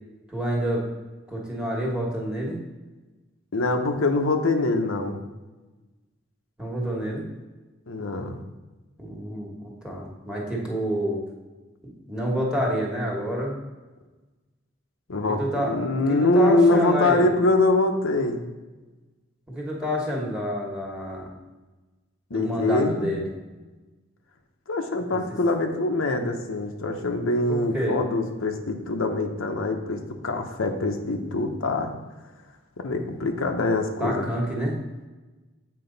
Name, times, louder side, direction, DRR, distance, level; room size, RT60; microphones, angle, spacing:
voice 1, 0.3-0.8 1.3-2.6 6.6-7.2 9.0-11.2 11.8-13.6 15.3-17.3 19.5-21.3 22.3-23.3 25.1-25.2 27.5-28.0 34.0-34.8, equal, 5° right, -2 dB, 1.3 m, -28 dB
voice 2, 3.5-5.2 7.9-8.4 15.1-18.4 22.3-23.1 24.7-31.9 32.8-34.3, left 2 dB, 80° left, 4 dB, 0.7 m, -24 dB
7.7 x 4.6 x 4.0 m, 1.2 s
head